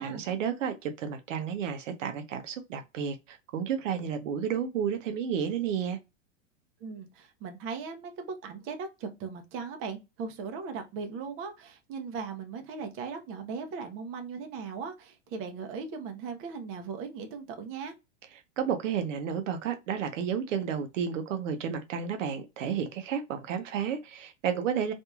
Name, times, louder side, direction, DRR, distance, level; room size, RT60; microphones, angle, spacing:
voice 1, 0.0-6.0 18.6-24.9, right 7 dB, 70° right, 0.7 m, -31 dB
voice 2, 6.8-17.9, right 5 dB, 35° right, 0.7 m, -38 dB
2.9 x 2.6 x 2.2 m
hypercardioid pair, 115°, 39 cm